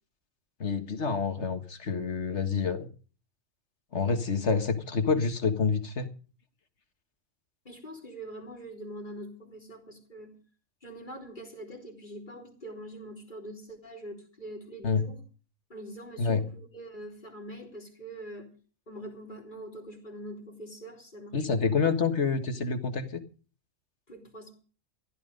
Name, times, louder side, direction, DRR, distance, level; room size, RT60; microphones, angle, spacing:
voice 1, 0.6-2.9 3.9-6.1 14.8-15.0 16.2-16.5 21.3-23.2, left 5 dB, 60° left, 7 dB, 2.0 m, -27 dB
voice 2, 7.7-10.4 10.8-15.2 15.7-18.5 18.9-21.7 24.1-24.5, right 1 dB, 35° left, 2 dB, 3.9 m, -43 dB
15.5 x 12.5 x 5.3 m, 0.39 s
omnidirectional pair, 1.4 m